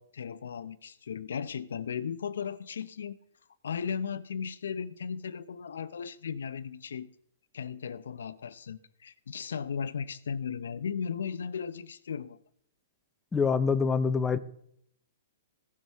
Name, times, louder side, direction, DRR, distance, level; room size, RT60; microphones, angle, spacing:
voice 1, 0.0-3.2 3.6-7.1 7.5-12.4, left 7 dB, 85° left, 0.6 m, -36 dB
voice 2, 13.3-14.4, left 5 dB, 10° left, 0.6 m, -25 dB
17.0 x 6.4 x 3.5 m
hypercardioid pair, 145°, 0 cm